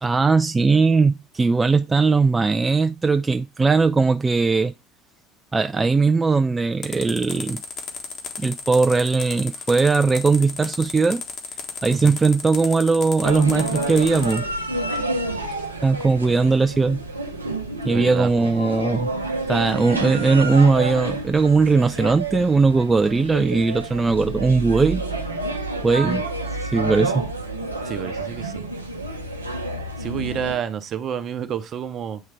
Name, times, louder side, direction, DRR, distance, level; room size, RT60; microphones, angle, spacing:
voice 1, 0.0-4.7 5.5-7.6 8.4-11.2 11.8-14.5 15.8-17.0 17.8-19.1 19.5-25.0 25.8-26.2 26.7-27.3, right 4 dB, 20° right, 0.3 m, -19 dB
sound 1, 6.8-14.4, left 5 dB, 45° left, 1.5 m, -33 dB
voice 2, 11.9-12.2 17.9-18.5 26.0-26.2 27.8-28.7 30.0-32.2, right 8 dB, 45° right, 0.8 m, -30 dB
sound 2, 13.2-30.6, right 2 dB, 85° right, 0.7 m, -29 dB
8.8 x 3.2 x 3.4 m
figure-of-eight pair, 65°, 0 cm